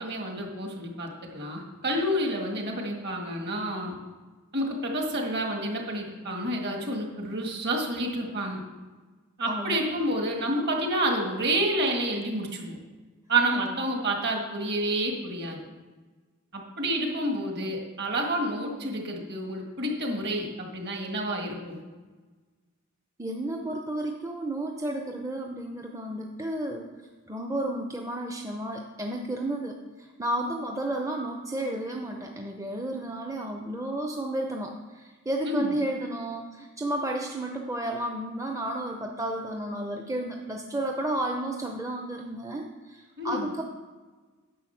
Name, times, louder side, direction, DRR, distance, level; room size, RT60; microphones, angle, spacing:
voice 1, 0.0-4.0 4.5-8.6 9.4-12.8 13.3-15.6 16.5-21.8 35.4-35.7 43.2-43.5, right 1 dB, 50° right, 2 dB, 1.9 m, -29 dB
voice 2, 9.5-9.8 13.6-13.7 23.2-26.9 27.3-43.6, right 1 dB, 15° right, 2 dB, 0.6 m, -32 dB
10.0 x 7.2 x 5.8 m, 1.3 s
head